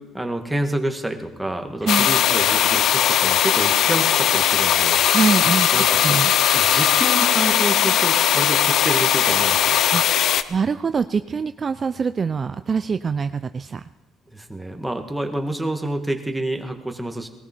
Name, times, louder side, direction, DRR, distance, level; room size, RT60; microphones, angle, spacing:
voice 1, 0.1-5.0 5.7-6.2 6.5-9.8 14.3-17.3, right 1 dB, 5° right, 5 dB, 1.7 m, -28 dB
sound 1, 1.9-10.4, left 10 dB, 65° left, 0.6 m, -18 dB
voice 2, 5.1-6.3 9.9-10.1 10.5-13.8, right 5 dB, 35° right, 12 dB, 0.4 m, -24 dB
19.5 x 14.0 x 4.5 m, 1.1 s
cardioid pair, 90°, 0 cm